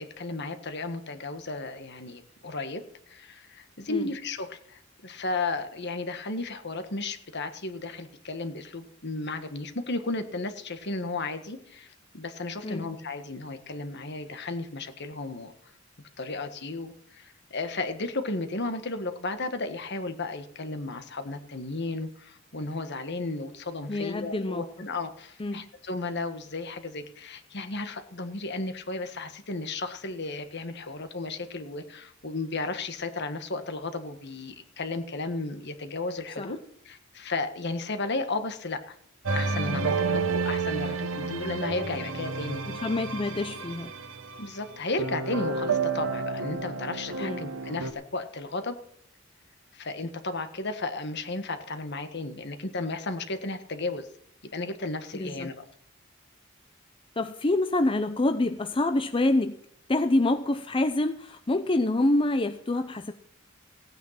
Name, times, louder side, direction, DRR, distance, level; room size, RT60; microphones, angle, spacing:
voice 1, 0.0-15.5 16.2-36.6 36.8-39.0 39.3-42.6 44.4-48.8 49.7-54.1 54.5-55.6, left 3 dB, 60° left, 8 dB, 1.6 m, -34 dB
voice 2, 23.9-24.7 25.4-25.7 36.4-36.5 42.8-43.9 47.2-47.5 55.1-55.5 57.2-59.6 59.9-63.1, left 2 dB, 25° left, 8 dB, 0.6 m, -26 dB
sound 1, 39.3-44.4 45.0-47.9, right 4 dB, 75° right, 1.3 m, -30 dB
16.5 x 9.4 x 5.9 m, 0.70 s
head